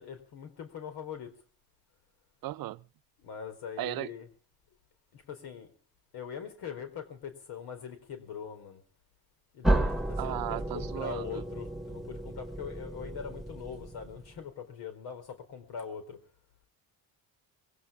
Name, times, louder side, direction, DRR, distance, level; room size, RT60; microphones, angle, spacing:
voice 1, 0.0-1.3 3.2-4.3 5.1-5.7 6.1-8.8 9.5-16.2, left 7 dB, 80° left, 4.5 m, -42 dB
voice 2, 2.4-2.8 3.8-4.1 10.2-11.4, right 15 dB, 65° right, 0.7 m, -36 dB
sound 1, 9.6-14.4, right 1 dB, ahead, 1.5 m, -32 dB
22.5 x 17.0 x 3.7 m
cardioid pair, 100°, 38 cm